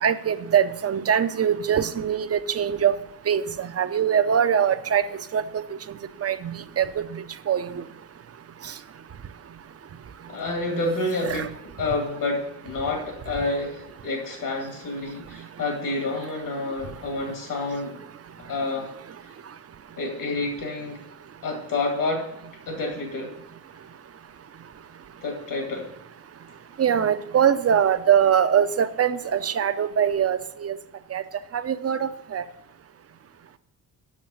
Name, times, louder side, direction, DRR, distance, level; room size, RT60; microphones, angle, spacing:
voice 1, 0.0-2.9 3.3-5.0 5.3-5.6 6.2-7.8 11.3-11.5 26.8-30.8 31.1-31.2 31.5-32.4, right 8 dB, 40° right, 11 dB, 0.7 m, -23 dB
voice 2, 10.3-11.5 11.8-18.0 18.4-18.9 20.0-21.0 21.4-22.3 22.7-23.3 25.2-25.9, left 2 dB, 60° left, 2 dB, 2.2 m, -28 dB
7.3 x 6.4 x 7.6 m, 0.82 s
cardioid pair, 105°, 37 cm